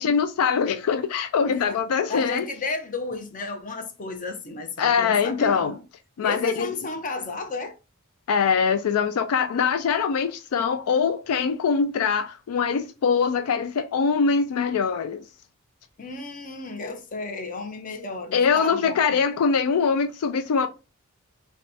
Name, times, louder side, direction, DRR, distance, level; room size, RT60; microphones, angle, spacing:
voice 1, 0.0-2.5 4.8-5.8 6.2-6.7 8.3-15.2 18.3-20.7, left 6 dB, 75° left, 0.4 m, -23 dB
voice 2, 1.4-1.8 2.1-5.8 6.2-7.8 16.0-19.2, left 3 dB, 40° left, 0.7 m, -33 dB
6.3 x 2.3 x 2.7 m
head